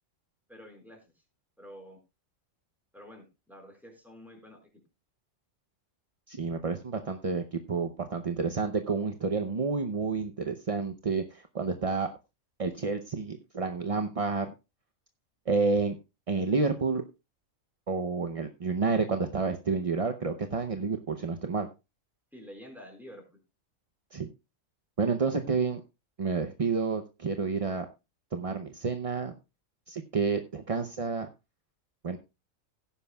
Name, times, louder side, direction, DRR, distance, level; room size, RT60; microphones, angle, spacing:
voice 1, 0.5-1.0 1.6-2.0 2.9-4.6 22.3-23.4, equal, ahead, 1 dB, 4.7 m, -49 dB
voice 2, 6.3-12.1 12.6-14.5 15.5-16.0 16.3-17.0 17.9-21.7 24.1-24.3 25.0-25.8 26.2-27.9 28.3-29.3 29.9-31.3 32.0-32.2, right 4 dB, 35° right, 6 dB, 0.6 m, -29 dB
17.0 x 10.0 x 2.3 m, 0.27 s
omnidirectional pair, 1.4 m